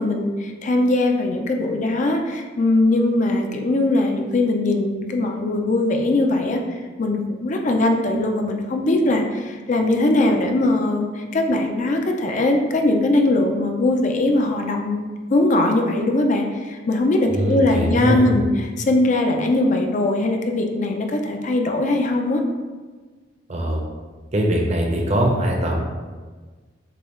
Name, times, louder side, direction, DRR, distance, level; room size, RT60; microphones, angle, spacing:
voice 1, 0.0-22.4, left 2 dB, 40° left, 3 dB, 0.4 m, -20 dB
voice 2, 17.3-18.3 23.5-23.8 24.3-25.8, right 1 dB, 35° right, 0 dB, 0.7 m, -21 dB
6.6 x 2.3 x 3.0 m, 1.4 s
head